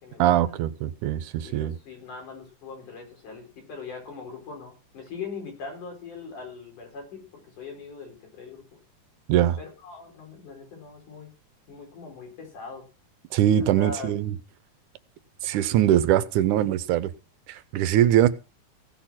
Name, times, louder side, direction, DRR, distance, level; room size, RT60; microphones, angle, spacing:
voice 1, 0.2-1.7 9.3-9.6 13.3-14.4 15.4-17.1 17.5-18.3, right 11 dB, 90° right, 2.3 m, -22 dB
voice 2, 1.4-8.6 9.6-11.3 11.7-12.8 13.6-14.1, left 4 dB, 85° left, 6.1 m, -41 dB
16.5 x 6.5 x 5.7 m
omnidirectional pair, 3.5 m